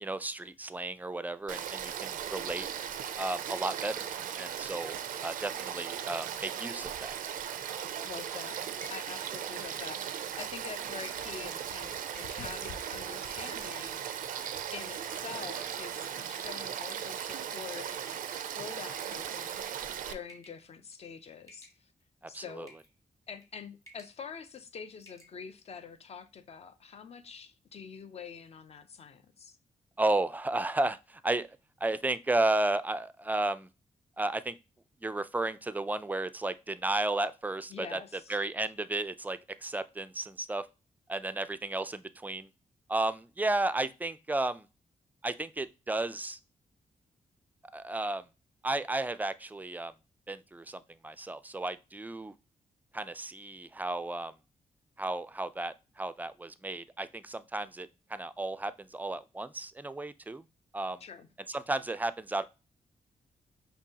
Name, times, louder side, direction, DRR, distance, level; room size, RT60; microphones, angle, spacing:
voice 1, 0.0-2.7 3.2-4.1 4.4-4.9 5.2-7.1 22.3-22.7 30.0-31.5 31.8-33.7 34.2-34.6 35.0-38.0 38.3-40.7 41.1-42.5 42.9-44.7 45.2-46.4 47.7-48.3 48.6-49.9 50.3-52.3 52.9-54.3 55.0-60.4 60.7-61.0 61.5-62.4, right 2 dB, 10° right, 0.3 m, -33 dB
Frog / Stream, 1.5-20.1, right 9 dB, 90° right, 0.4 m, -38 dB
sound 1, 7.6-8.1 8.8-9.1 9.9-10.2 11.0-11.3 12.1-12.5 13.3-13.8 14.4-14.8 15.6-16.2 16.8-17.1 17.9-18.6 19.1-19.8 20.3-20.7 20.9-21.2 21.5-22.1 22.7-22.9 23.3-23.5 23.8-24.2 24.5-24.6 25.0-25.3, equal, 20° left, 1.2 m, -56 dB
voice 2, 8.0-8.6 8.9-14.4 14.7-17.9 18.4-21.9 22.3-22.7 23.3-29.6 37.7-38.4 61.0-61.3, left 6 dB, 50° left, 0.6 m, -46 dB
sound 2, 10.3-16.4, left 6 dB, 90° left, 0.6 m, -53 dB
5.3 x 2.7 x 2.8 m
cardioid pair, 95°, 14 cm